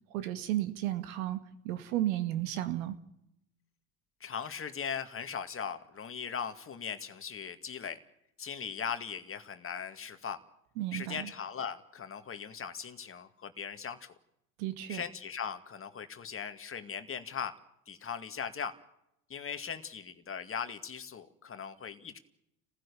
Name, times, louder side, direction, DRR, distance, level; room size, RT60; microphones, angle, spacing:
voice 1, 0.1-3.0 10.8-11.3 14.6-15.0, right 14 dB, 70° right, 10 dB, 2.1 m, -33 dB
voice 2, 4.2-8.0 8.4-10.4 10.9-14.1 14.9-17.6 17.9-18.7 19.3-22.2, left 7 dB, 30° left, 9 dB, 2.1 m, -39 dB
29.0 x 15.5 x 7.0 m, 0.80 s
hypercardioid pair, 80°, 43 cm